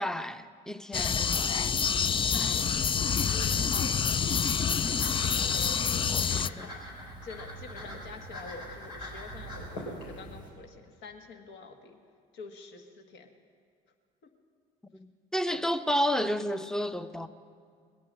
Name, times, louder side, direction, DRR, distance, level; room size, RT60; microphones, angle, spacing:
voice 1, 0.0-1.5 5.3-5.5 5.9-6.7 15.0-17.3, equal, 5° left, 0.7 m, -32 dB
sound 1, 0.9-6.5, left 6 dB, 25° left, 0.4 m, -27 dB
voice 2, 2.1-2.7 3.0-4.6 5.3-5.9 6.2-6.8 7.2-12.0 12.3-13.3 15.5-15.6, left 4 dB, 60° left, 1.6 m, -47 dB
sound 2, 2.2-10.5, equal, 80° left, 4.8 m, -44 dB
21.0 x 8.6 x 7.6 m
hypercardioid pair, 60°, 21 cm